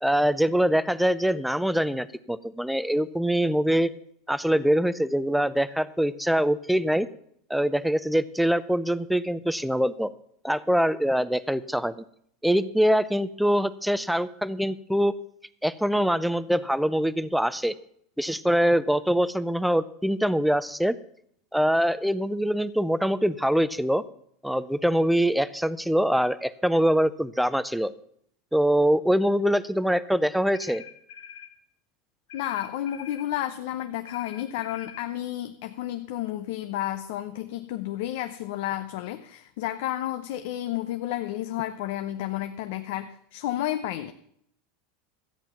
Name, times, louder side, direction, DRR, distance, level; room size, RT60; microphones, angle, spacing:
voice 1, 0.0-3.9 4.3-7.1 7.5-10.1 10.4-11.9 12.4-15.1 15.6-17.7 18.2-20.9 21.5-24.0 24.4-27.9 28.5-30.8, equal, ahead, 16 dB, 0.4 m, -24 dB
sound 1, 30.5-31.5 32.3-33.3 34.1-35.0, left 8 dB, 80° left, 1.4 m, -45 dB
voice 2, 32.3-44.1, left 13 dB, 65° left, 9 dB, 0.7 m, -31 dB
13.5 x 9.1 x 5.7 m, 0.69 s
supercardioid pair, 150°, 0 cm